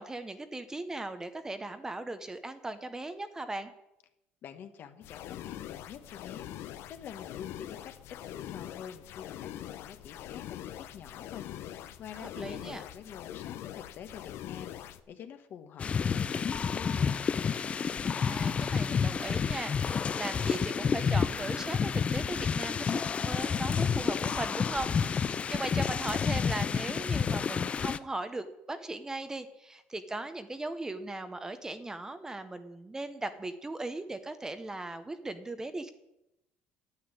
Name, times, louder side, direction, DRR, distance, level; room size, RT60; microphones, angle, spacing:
voice 1, 0.0-3.7 12.2-12.8 18.0-35.9, right 2 dB, 15° right, 10 dB, 0.8 m, -38 dB
voice 2, 4.4-17.1, left 8 dB, 50° left, 8 dB, 1.3 m, -47 dB
sound 1, 5.0-15.0, left 12 dB, 65° left, 0.8 m, -43 dB
sound 2, 15.8-28.0, left 6 dB, 25° left, 0.4 m, -30 dB
9.6 x 8.0 x 9.6 m, 0.87 s
cardioid pair, 135°, 4 cm